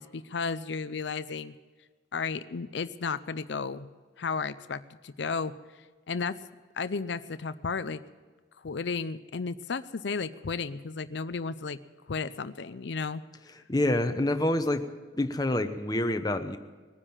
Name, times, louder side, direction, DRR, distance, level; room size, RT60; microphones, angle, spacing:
voice 1, 0.0-1.5 2.1-3.9 4.2-5.5 6.1-6.4 6.7-8.0 8.6-11.8 12.1-13.2, left 5 dB, 65° left, 12 dB, 0.5 m, -33 dB
voice 2, 13.7-14.8 15.2-16.6, left 1 dB, 20° left, 8 dB, 0.9 m, -27 dB
20.0 x 9.9 x 7.2 m, 1.4 s
head